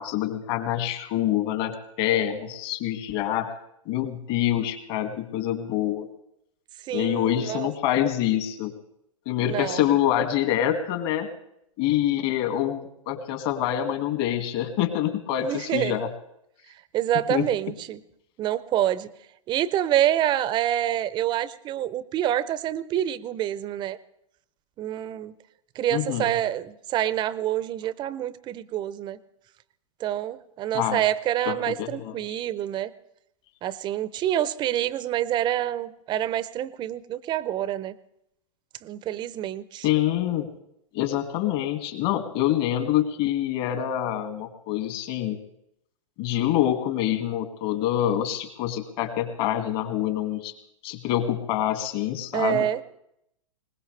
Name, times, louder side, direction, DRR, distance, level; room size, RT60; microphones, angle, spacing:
voice 1, 0.0-3.5 3.9-6.1 6.9-8.7 9.3-11.3 11.8-16.1 17.3-17.4 25.9-26.3 30.7-31.0 31.5-32.4 39.8-40.5 40.9-45.4 46.2-50.5 50.8-52.7, left 12 dB, 45° left, 6 dB, 2.1 m, -26 dB
voice 2, 6.9-7.7 9.4-9.9 15.4-16.0 16.9-18.0 18.4-19.1 19.5-24.0 24.8-25.3 25.8-29.2 30.0-32.9 33.6-37.9 38.8-39.9 52.3-52.8, right 12 dB, 25° right, 18 dB, 0.6 m, -27 dB
21.0 x 20.0 x 3.3 m, 0.78 s
hypercardioid pair, 120°, 18 cm